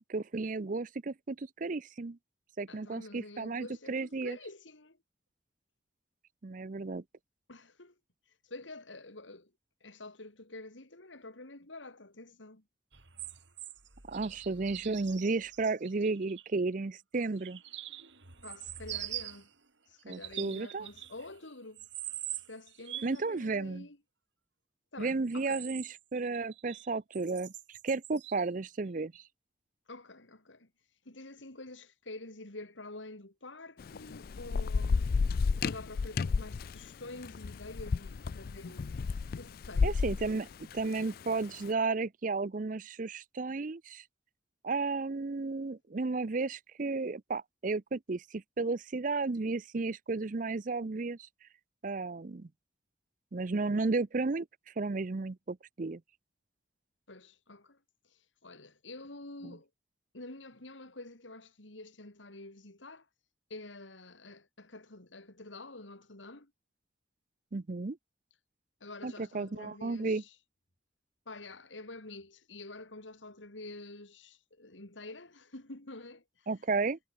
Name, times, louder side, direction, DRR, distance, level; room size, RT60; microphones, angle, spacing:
voice 1, 0.0-2.2 2.6-4.4 6.4-7.0 14.1-17.6 20.0-20.9 23.0-23.9 25.0-29.2 39.8-40.5 40.7-44.0 44.6-51.2 51.8-52.5 53.3-54.5 54.8-56.0 59.4-59.6 67.5-68.0 69.0-70.2 76.5-77.0, right 3 dB, 45° right, 0.6 m, -33 dB
voice 2, 2.7-5.0 7.5-8.0 8.4-9.5 9.8-12.6 18.4-19.5 19.9-21.9 22.3-24.0 24.9-25.7 29.9-30.7 31.1-35.1 35.6-39.1 39.4-40.0 57.1-57.8 58.1-59.7 60.1-63.1 63.5-66.5 68.8-70.4 71.3-76.5, left 2 dB, 90° left, 3.5 m, -48 dB
sound 1, 12.9-16.5 17.1-19.5 20.0-21.4 21.8-23.2 25.1-26.9 27.1-28.5 29.1-29.2, right 13 dB, 80° right, 3.6 m, -44 dB
Thunder / Rain, 33.8-41.4, left 4 dB, 50° left, 0.4 m, -32 dB
head